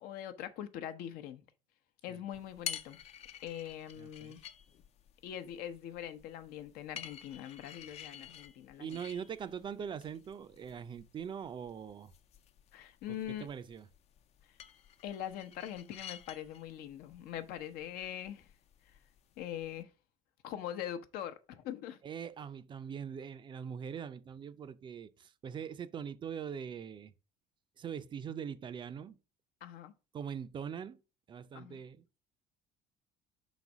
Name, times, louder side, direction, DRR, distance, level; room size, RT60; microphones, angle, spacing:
voice 1, 0.0-1.4 2.0-3.0 3.4-4.4 5.2-9.0 12.7-13.5 14.4-14.6 15.0-18.5 18.8-19.0 19.4-19.9 20.4-22.0 29.6-29.9 31.5-31.8, left 10 dB, 70° left, 0.8 m, -42 dB
sound 1, 2.3-19.8, left 9 dB, 45° left, 0.5 m, -51 dB
voice 2, 4.0-4.3 8.8-12.1 13.1-13.9 22.0-27.1 27.8-29.2 30.1-31.0 31.3-32.0, right 7 dB, 30° right, 0.4 m, -42 dB
5.3 x 4.0 x 5.9 m
cardioid pair, 130°, 16 cm